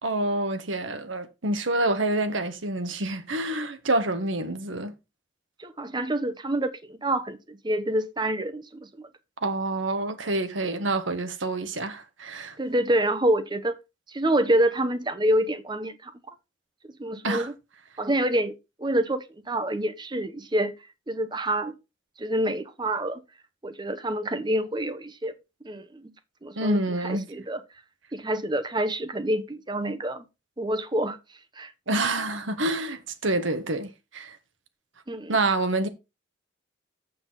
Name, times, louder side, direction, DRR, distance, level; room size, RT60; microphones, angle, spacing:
voice 1, 0.0-4.9 9.4-12.6 17.2-17.5 26.5-27.3 31.9-34.4 35.3-35.9, right 2 dB, 80° right, 1.3 m, -27 dB
voice 2, 5.6-8.9 12.6-13.7 14.1-16.1 17.0-17.5 18.0-20.7 21.1-21.7 22.2-23.2 23.6-25.3 25.6-26.1 26.4-27.6 28.1-30.2 30.6-31.2 31.6-31.7 35.1-35.3, right 1 dB, 25° right, 0.8 m, -27 dB
7.8 x 7.1 x 4.1 m
head